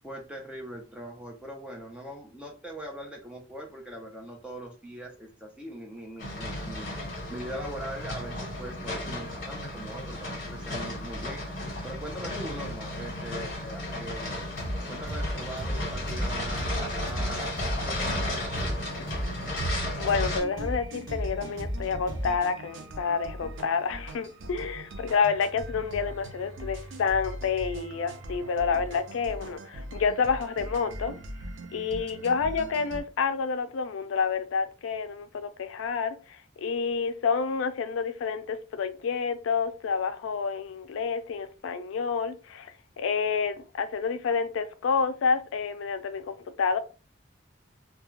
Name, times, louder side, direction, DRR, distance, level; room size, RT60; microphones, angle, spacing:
voice 1, 0.0-7.0 7.3-11.4 11.8-14.5 14.9-17.5 17.8-18.6, right 1 dB, 5° right, 0.5 m, -41 dB
sound 1, 6.2-20.4, left 1 dB, 45° left, 1.2 m, -34 dB
sound 2, 14.6-22.5, equal, 20° left, 0.8 m, -34 dB
sound 3, 15.0-33.0, right 1 dB, 75° right, 0.5 m, -41 dB
voice 2, 20.0-31.2 31.7-46.8, left 5 dB, 90° left, 0.4 m, -29 dB
2.3 x 2.3 x 3.1 m
head